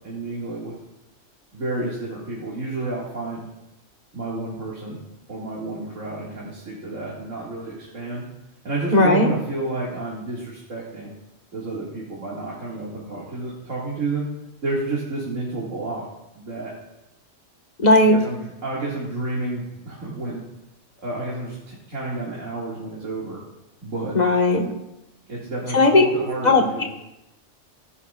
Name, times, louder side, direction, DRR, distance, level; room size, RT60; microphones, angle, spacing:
voice 1, 0.0-0.7 1.5-3.5 4.1-5.0 5.3-8.3 8.6-11.1 11.5-14.3 14.6-16.1 16.3-16.7 18.0-20.4 21.0-23.4 23.8-24.1 25.3-26.9, right 2 dB, 80° right, -6 dB, 2.5 m, -30 dB
voice 2, 8.9-9.3 17.8-18.2 24.1-24.7 25.7-26.0 26.4-26.6, left 2 dB, 35° left, 1 dB, 1.5 m, -16 dB
19.5 x 9.9 x 2.4 m, 0.91 s
omnidirectional pair, 1.3 m